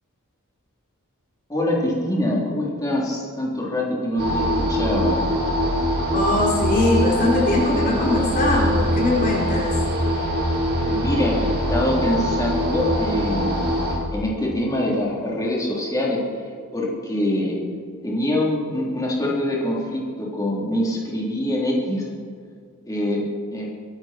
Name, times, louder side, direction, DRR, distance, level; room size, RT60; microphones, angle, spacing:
voice 1, 1.5-5.2 10.9-13.7 14.1-16.2 16.7-17.6 18.0-22.1 22.9-23.2 23.5-23.7, left 1 dB, 15° left, -4 dB, 3.6 m, -24 dB
sound 1, 4.2-14.0, equal, 50° right, 4.8 m, -23 dB
voice 2, 6.1-9.8, left 2 dB, 40° left, -3 dB, 3.9 m, -21 dB
23.5 x 12.0 x 4.6 m, 2.2 s
head